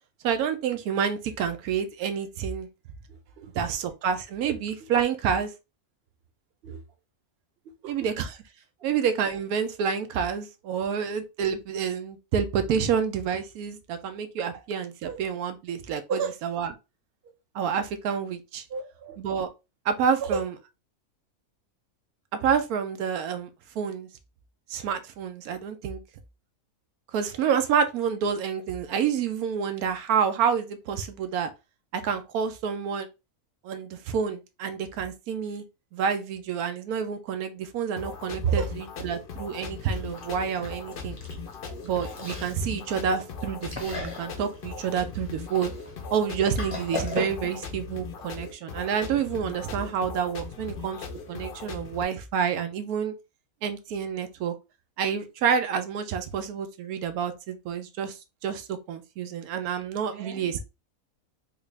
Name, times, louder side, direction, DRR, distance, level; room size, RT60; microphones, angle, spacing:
voice 1, 0.2-2.7 3.5-5.5 7.9-8.3 8.8-16.7 17.5-18.6 19.2-19.5 19.8-20.5 22.4-23.5 23.8-24.1 24.7-26.0 27.1-31.5 31.9-33.1 33.6-35.6 35.9-41.2 41.8-45.7 46.1-51.0 51.3-53.1 53.6-54.5 55.0-58.2 58.4-60.6, right 7 dB, 90° right, 1.1 m, -28 dB
voice 2, 3.1-3.6 4.8-4.9 6.6-6.8 7.7-8.1 15.1-15.2 16.1-16.3 18.7-19.2 20.2-20.4 38.4-38.7 39.0-39.1 60.1-60.6, right 5 dB, 50° right, 0.8 m, -31 dB
sound 1, 38.0-52.0, left 4 dB, 55° left, 0.6 m, -39 dB
Chewing mastication, 39.7-47.7, left 3 dB, 25° left, 0.9 m, -39 dB
3.5 x 2.4 x 3.2 m
omnidirectional pair, 1.5 m